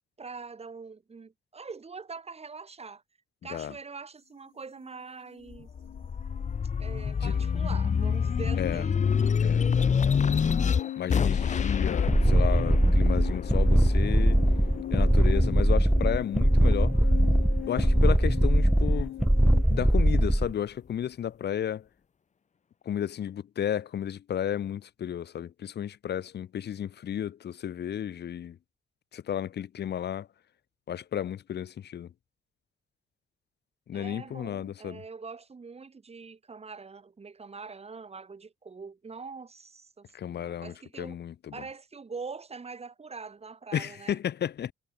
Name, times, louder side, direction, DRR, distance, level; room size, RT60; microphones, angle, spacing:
voice 1, 0.2-3.0 3.4-5.7 6.8-9.0 33.9-41.2 41.5-44.2, right 4 dB, 30° right, 4.7 m, -43 dB
sound 1, 4.8-5.0 5.3-19.6, left 13 dB, 80° left, 5.2 m, -41 dB
sound 2, 5.5-16.3 16.8-18.0, left 6 dB, 35° left, 1.2 m, -27 dB
voice 2, 7.2-7.7 8.6-8.8 9.4-9.7 11.0-14.4 14.9-17.0 17.7-19.2 19.7-21.9 22.8-28.6 29.1-30.3 30.9-32.1 33.9-35.0 40.1-41.6 43.7-44.7, left 9 dB, 55° left, 1.3 m, -33 dB
sound 3, 12.1-20.5, right 1 dB, 5° right, 0.3 m, -21 dB
cardioid pair, 90°, 20 cm